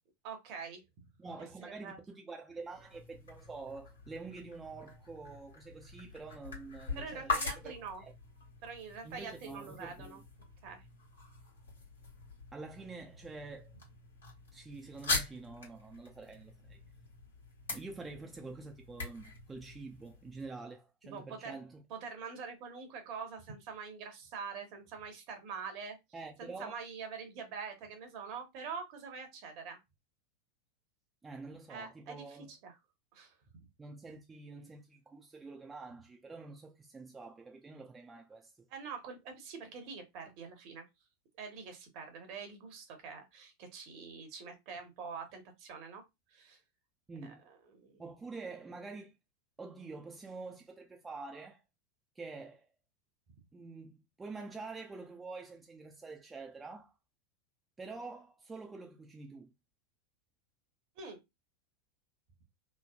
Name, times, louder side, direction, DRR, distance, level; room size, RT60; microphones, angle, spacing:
voice 1, 0.2-0.8 1.8-2.0 7.0-8.0 8.6-10.2 10.6-10.8 21.1-21.6 21.9-26.0 26.4-29.8 31.7-32.8 33.1-33.3 38.7-40.8 41.4-46.0 46.3-46.6 47.2-48.1 61.0-61.2, right 5 dB, 55° right, 1.0 m, -45 dB
voice 2, 1.2-7.7 8.0-8.1 9.0-10.2 12.5-13.7 14.5-16.8 17.7-21.8 26.1-26.7 31.2-32.5 33.8-38.7 47.1-47.4 48.0-49.1 49.6-51.6 52.2-52.7 53.5-56.9 57.8-59.5, right 3 dB, 15° right, 0.5 m, -47 dB
sound 1, 2.6-20.4, left 3 dB, 85° left, 1.2 m, -43 dB
3.2 x 2.0 x 2.4 m
hypercardioid pair, 95°, 0 cm